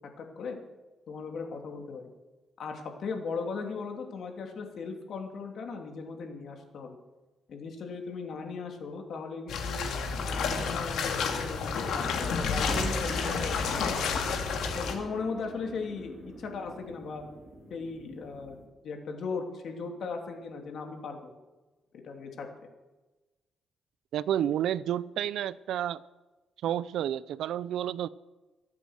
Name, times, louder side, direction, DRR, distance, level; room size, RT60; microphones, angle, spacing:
voice 1, 0.2-0.6 1.1-2.0 2.6-7.0 7.5-9.9 10.3-14.1 14.7-17.2 17.7-18.6 18.8-21.3 22.0-22.7, left 4 dB, 60° left, 2.9 m, -37 dB
sound 1, 9.5-14.9, left 5 dB, 85° left, 2.6 m, -30 dB
sound 2, 12.7-18.7, right 1 dB, 15° right, 3.7 m, -42 dB
voice 2, 24.1-26.0 26.6-28.1, right 11 dB, 85° right, 0.5 m, -30 dB
23.5 x 8.3 x 6.5 m
cardioid pair, 135°, 0 cm